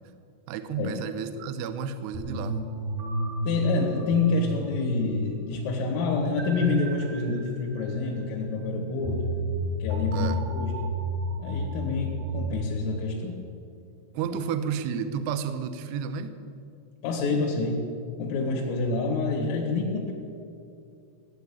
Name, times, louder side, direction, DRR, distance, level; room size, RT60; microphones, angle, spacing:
voice 1, 0.5-2.6 10.1-10.4 14.1-16.4, right 7 dB, 80° right, 10 dB, 2.4 m, -31 dB
sound 1, 2.1-12.5, equal, 50° right, 3.8 m, -32 dB
voice 2, 3.5-9.3 9.8-10.9 11.4-13.4 17.0-17.9 18.2-20.1, left 3 dB, 75° left, 0 dB, 4.5 m, -28 dB
17.5 x 9.5 x 8.6 m, 2.5 s
omnidirectional pair, 6.0 m